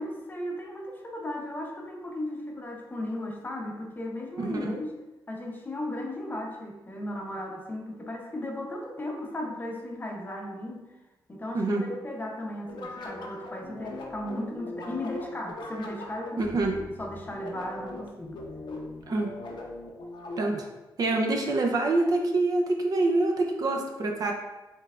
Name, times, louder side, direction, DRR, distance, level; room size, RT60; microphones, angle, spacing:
voice 1, 0.0-4.9 5.3-10.9 11.3-16.6 17.0-18.4, left 1 dB, 25° left, 0 dB, 0.7 m, -36 dB
voice 2, 4.4-4.7 11.5-11.8 16.4-16.7 19.1-19.3 20.4-20.7 21.0-24.3, right 2 dB, 50° right, 2 dB, 0.5 m, -26 dB
sound 1, 12.7-20.8, left 2 dB, 65° left, 0.7 m, -40 dB
5.5 x 3.3 x 2.4 m, 1.1 s
wide cardioid pair, 125°, 8 cm